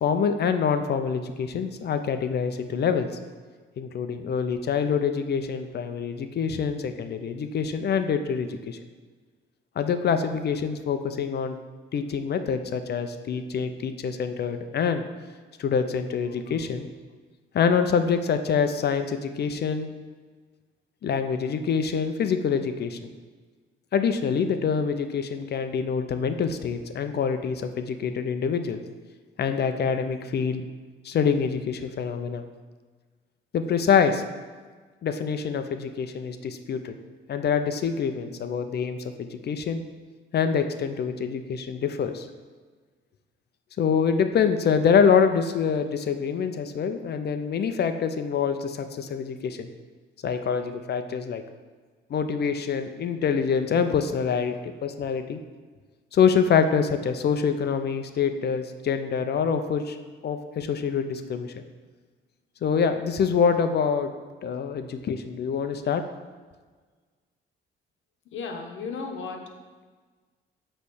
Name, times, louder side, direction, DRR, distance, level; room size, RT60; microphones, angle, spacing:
voice 1, 0.0-3.1 3.8-8.8 9.8-11.6 11.9-15.0 15.6-16.9 17.5-19.9 21.0-23.1 23.9-28.8 29.4-30.6 31.0-32.4 33.5-34.2 35.0-36.9 37.3-39.8 40.3-42.3 43.8-49.7 50.2-51.4 52.1-54.6 54.8-55.4 56.1-60.0 60.2-61.5 62.6-64.1 64.4-66.0, left 6 dB, 55° left, 8 dB, 0.6 m, -25 dB
voice 2, 68.3-69.8, left 4 dB, 75° left, 4 dB, 1.1 m, -35 dB
8.2 x 3.3 x 6.2 m, 1.4 s
cardioid pair, 90°, 20 cm